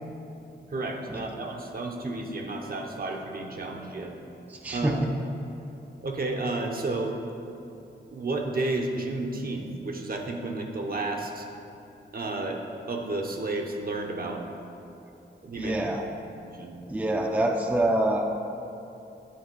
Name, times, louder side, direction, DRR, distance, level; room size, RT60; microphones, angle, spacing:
voice 1, 0.7-4.1 4.7-5.0 6.0-7.2 8.1-11.5 12.1-14.4 15.4-15.7 16.4-16.8, right 2 dB, 50° right, 2 dB, 0.8 m, -32 dB
voice 2, 4.5-5.1 15.6-16.0 16.9-18.2, right 1 dB, 10° right, 2 dB, 0.4 m, -26 dB
9.4 x 3.2 x 4.6 m, 2.8 s
cardioid pair, 65°, 20 cm